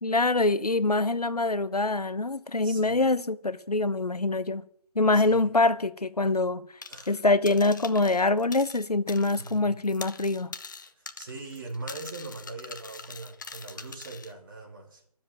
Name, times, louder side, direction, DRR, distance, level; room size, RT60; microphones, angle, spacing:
voice 1, 0.0-4.6 4.9-6.6 7.1-10.5, left 2 dB, 75° left, 1.1 m, -24 dB
voice 2, 2.6-3.0 5.1-5.5 6.9-7.2 9.4-9.7 10.9-15.0, right 3 dB, 30° right, 3.0 m, -41 dB
sound 1, 6.8-7.2 7.5-9.6 9.8-14.3, left 4 dB, 30° left, 0.8 m, -43 dB
13.0 x 7.5 x 9.3 m
figure-of-eight pair, 155°, 20 cm